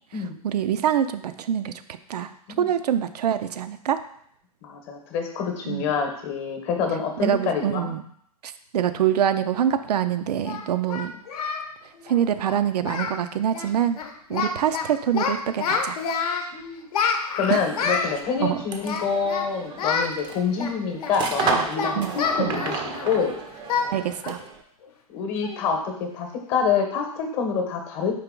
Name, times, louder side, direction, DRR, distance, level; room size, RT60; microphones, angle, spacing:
voice 1, 0.4-1.7 2.1-2.3 2.6-4.0 5.7-5.8 7.2-8.0 8.4-11.1 12.0-14.0 14.3-16.0 17.5-17.6 18.4-18.6 21.9-22.6 23.9-24.4, right 9 dB, 80° right, 11 dB, 0.4 m, -25 dB
voice 2, 4.6-7.9 16.5-16.9 17.3-22.8 23.0-23.4 25.1-28.1, left 6 dB, 35° left, 3 dB, 0.9 m, -27 dB
Singing, 9.6-9.7 10.5-11.7 11.9-12.2 12.5-12.6 12.8-13.2 13.5-13.7 14.0-14.8 15.1-16.5 16.9-18.1 18.8-19.5 19.8-20.1 20.6-23.2 23.7-23.9 24.2-24.4 24.8-24.9 25.4-25.7, left 6 dB, 70° left, 0.7 m, -27 dB
sound 1, 17.8-24.6, right 5 dB, 25° right, 0.4 m, -32 dB
4.6 x 2.9 x 3.7 m, 0.67 s
hypercardioid pair, 130°, 20 cm